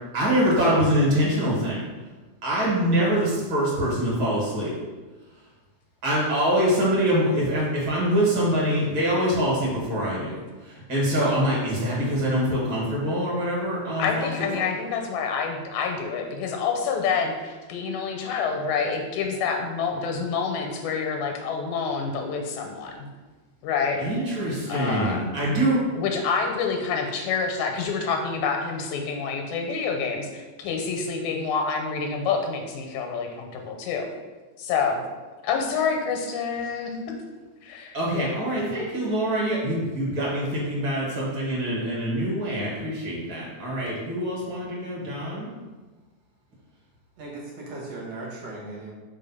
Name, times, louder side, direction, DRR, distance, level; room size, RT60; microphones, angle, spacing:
voice 1, 0.1-1.8 2.4-4.7 6.0-10.4 10.9-14.3 24.0-25.8 37.9-45.5, equal, 50° right, -5 dB, 2.0 m, -24 dB
voice 2, 14.0-23.1 23.6-24.0 24.7-25.2 25.9-34.1 34.6-35.0 35.4-37.0 37.6-38.3, left 5 dB, 85° left, 3 dB, 2.2 m, -27 dB
voice 3, 47.2-48.9, right 2 dB, 65° right, -3 dB, 2.0 m, -37 dB
4.7 x 3.7 x 5.5 m, 1.3 s
omnidirectional pair, 3.3 m